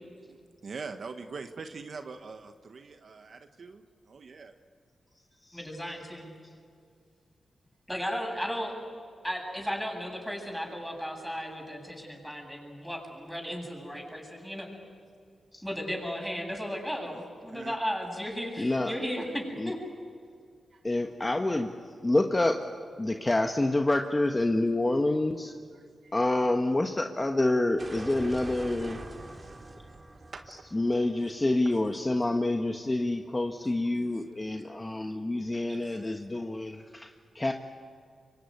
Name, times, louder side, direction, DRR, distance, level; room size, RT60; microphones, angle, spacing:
voice 1, 0.6-4.5 17.5-17.8 20.7-20.8 26.0-26.1 30.3-30.6 35.7-35.8, right 4 dB, 60° right, 7 dB, 1.3 m, -43 dB
voice 2, 5.5-6.3 7.9-8.7 9.2-14.7 15.6-19.8, equal, ahead, 1 dB, 7.9 m, -35 dB
voice 3, 18.6-18.9 19.6-19.7 20.8-22.7 23.0-25.5 26.1-29.0 30.5-37.5, left 2 dB, 25° left, 4 dB, 1.4 m, -28 dB
sound 1, 27.8-32.5, right 2 dB, 35° right, 2.6 m, -44 dB
25.5 x 23.5 x 9.6 m, 2.1 s
cardioid pair, 65°, 0 cm